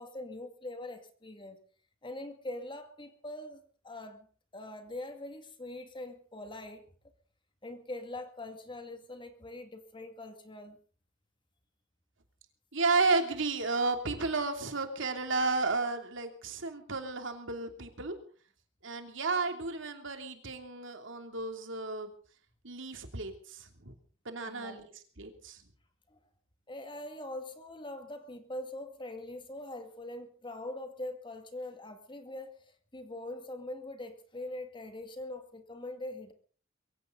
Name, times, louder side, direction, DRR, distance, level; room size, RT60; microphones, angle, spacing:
voice 1, 0.0-1.6 2.0-4.3 4.5-6.9 7.6-10.8 24.4-24.8 26.1-26.2 26.7-36.3, left 1 dB, 25° left, 7 dB, 2.3 m, -43 dB
voice 2, 12.7-18.1 18.8-22.1 22.6-23.9 24.2-25.6, right 3 dB, 65° right, 6 dB, 3.0 m, -32 dB
23.0 x 16.0 x 4.0 m, 0.42 s
head